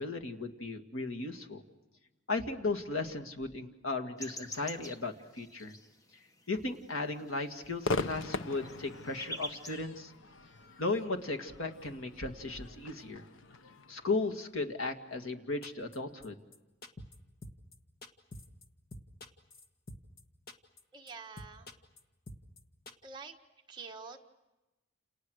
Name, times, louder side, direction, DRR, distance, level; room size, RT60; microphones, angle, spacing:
voice 1, 0.0-1.6 2.3-5.8 6.5-10.1 10.8-13.3 13.9-16.4, left 3 dB, 90° left, 4 dB, 2.2 m, -36 dB
sound 1, 4.2-6.4 6.8-9.8, equal, 15° left, 1.0 m, -45 dB
Crowd / Fireworks, 7.8-15.2, left 3 dB, 70° left, 1.0 m, -41 dB
sound 2, 15.6-16.0 16.2-16.3 16.5-16.6 16.8-17.2 17.4-17.7 18.0-18.6 18.9-20.2 20.5-20.8 21.1-21.2 21.4-22.0 22.3-22.6 22.9-23.0, left 1 dB, 45° left, 1.7 m, -47 dB
voice 2, 20.9-21.7 23.0-23.4 23.7-24.2, right 4 dB, 20° right, 2 dB, 1.6 m, -46 dB
29.5 x 29.0 x 6.5 m, 1.1 s
head